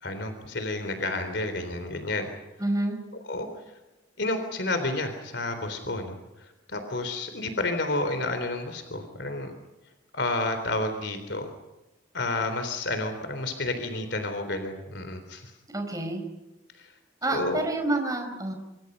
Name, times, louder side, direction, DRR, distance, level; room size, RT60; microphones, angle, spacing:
voice 1, 0.0-2.3 3.1-3.5 4.2-9.5 10.1-11.5 12.1-15.5 16.8-16.9 17.3-17.6, left 2 dB, 65° left, 8 dB, 3.7 m, -30 dB
voice 2, 2.6-3.0 15.7-16.2 17.2-18.5, right 2 dB, 20° right, 4 dB, 4.8 m, -28 dB
26.5 x 25.0 x 5.5 m, 1.0 s
head